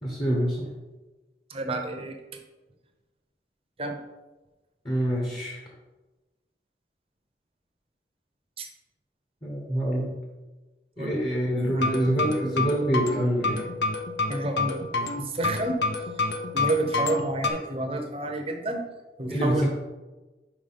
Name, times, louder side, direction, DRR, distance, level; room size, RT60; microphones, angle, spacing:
voice 1, 0.0-0.7 4.8-5.6 9.4-10.2 11.0-13.7 19.3-19.7, right 1 dB, 25° left, -3 dB, 1.2 m, -26 dB
voice 2, 1.5-2.2 3.8-4.0 8.6-8.7 11.0-11.2 11.7-12.0 14.3-14.8 15.1-15.8 16.5-18.8 19.2-19.7, right 1 dB, 35° right, 4 dB, 0.8 m, -29 dB
sound 1, 11.6-17.5, left 3 dB, 80° left, 0.7 m, -28 dB
5.1 x 4.8 x 5.7 m, 1.2 s
head